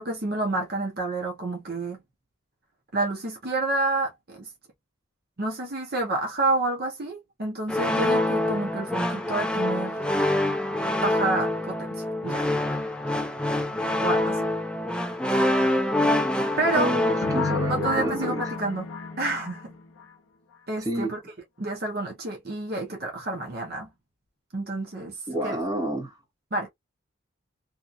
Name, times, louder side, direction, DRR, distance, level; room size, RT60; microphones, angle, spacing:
voice 1, 0.0-2.0 2.9-4.5 5.4-10.0 11.0-12.5 14.0-14.5 16.6-16.9 17.7-18.9 19.2-19.7 20.7-21.2 21.6-23.9 24.5-25.6 26.5-26.7, right 2 dB, 50° right, 0.7 m, -29 dB
sound 1, 7.7-18.6, left 1 dB, 5° left, 0.3 m, -26 dB
voice 2, 16.7-18.4 20.8-21.1 25.3-26.1, equal, 20° right, 1.2 m, -29 dB
sound 2, 17.2-20.1, left 4 dB, 80° left, 0.6 m, -32 dB
2.8 x 2.4 x 2.4 m
head